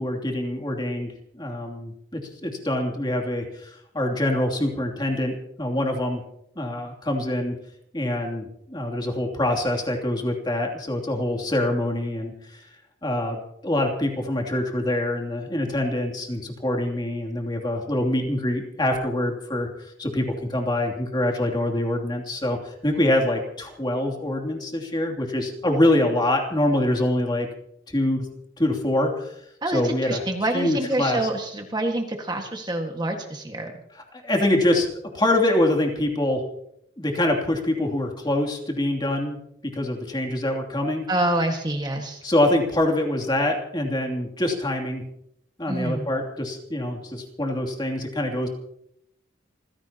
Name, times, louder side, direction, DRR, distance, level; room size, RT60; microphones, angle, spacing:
voice 1, 0.0-6.2 6.6-7.5 7.9-12.7 13.0-19.7 20.0-27.5 27.9-28.3 28.6-29.3 29.7-30.2 30.5-31.2 34.1-34.9 35.1-36.4 37.0-39.4 39.7-41.0 42.2-45.0 45.6-48.5, left 1 dB, 25° left, 1 dB, 2.9 m, -25 dB
voice 2, 29.6-33.7 41.1-42.2 45.7-46.1, right 1 dB, 20° right, 3 dB, 1.7 m, -27 dB
28.0 x 16.0 x 2.9 m, 0.75 s
head